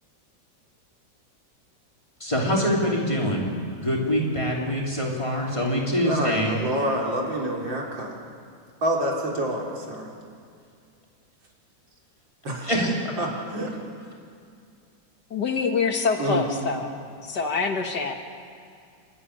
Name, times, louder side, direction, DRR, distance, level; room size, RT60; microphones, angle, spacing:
voice 1, 2.2-6.5 12.6-13.1, equal, 15° left, -3 dB, 3.8 m, -25 dB
voice 2, 6.0-8.2 8.8-10.1 12.4-12.7 13.2-13.8 16.2-16.4, right 1 dB, 80° right, -2 dB, 4.2 m, -27 dB
voice 3, 15.3-16.9 17.2-18.1, left 5 dB, 65° left, 4 dB, 2.1 m, -25 dB
27.0 x 13.5 x 9.9 m, 2.3 s
omnidirectional pair, 2.0 m